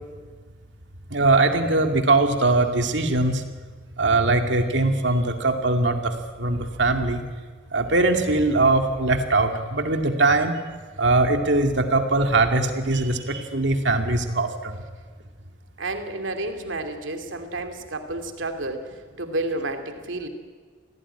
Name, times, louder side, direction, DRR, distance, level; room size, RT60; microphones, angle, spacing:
voice 1, 1.1-3.4 4.0-7.2 7.7-10.5 11.0-14.8, right 2 dB, 70° right, 5 dB, 2.4 m, -21 dB
voice 2, 15.8-20.3, right 2 dB, 85° right, 6 dB, 2.7 m, -31 dB
27.5 x 17.5 x 10.0 m, 1.5 s
head